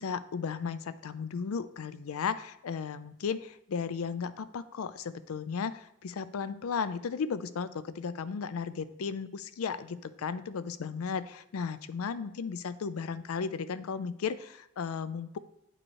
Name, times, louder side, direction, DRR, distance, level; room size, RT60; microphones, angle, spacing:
voice 1, 0.0-15.4, left 6 dB, 85° left, 14 dB, 0.4 m, -35 dB
8.8 x 3.1 x 4.6 m, 0.79 s
head